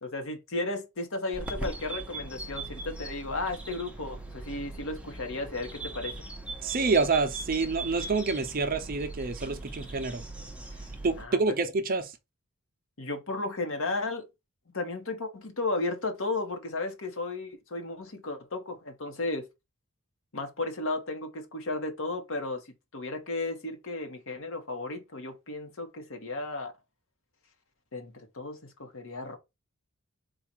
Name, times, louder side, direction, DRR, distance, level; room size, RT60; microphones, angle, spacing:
voice 1, 0.0-6.1 10.7-10.8 11.2-11.4 13.0-14.3 14.7-19.5 20.3-26.7 27.9-29.4, left 2 dB, 65° left, 1.1 m, -34 dB
sound 1, 1.3-11.2, right 2 dB, 5° right, 0.7 m, -40 dB
voice 2, 6.6-10.2 11.0-12.1, right 4 dB, 40° right, 0.6 m, -27 dB
4.0 x 2.4 x 4.4 m
head